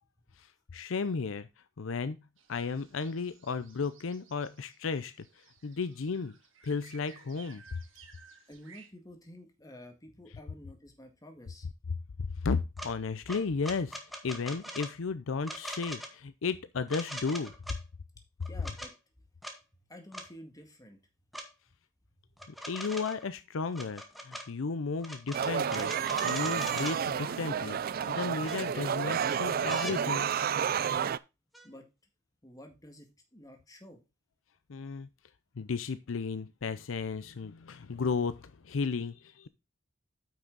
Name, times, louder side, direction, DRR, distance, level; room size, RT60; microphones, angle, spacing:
voice 1, 0.7-1.5 1.8-2.2 2.5-5.3 5.6-6.3 6.6-7.8 12.4-14.0 14.2-17.5 22.7-30.3 34.7-35.1 35.6-39.5, left 4 dB, 75° left, 0.6 m, -34 dB
sound 1, 2.4-8.9, right 6 dB, 70° right, 1.7 m, -58 dB
voice 2, 8.5-11.7 18.5-18.9 19.9-21.0 22.4-22.5 31.6-31.8 32.4-34.0, left 1 dB, 20° left, 1.9 m, -51 dB
sound 2, 12.8-12.9 13.3-14.9 15.4-16.1 16.9-17.8 18.4-18.9 19.4-19.6 20.1-20.3 21.3-21.5 22.4-23.2 23.7-24.5 25.0-27.0 28.0-28.1 28.5-29.0 29.7-30.0 31.5-31.7, equal, ahead, 1.3 m, -41 dB
sound 3, 25.3-31.2, right 8 dB, 50° right, 0.4 m, -30 dB
9.0 x 5.9 x 4.0 m
head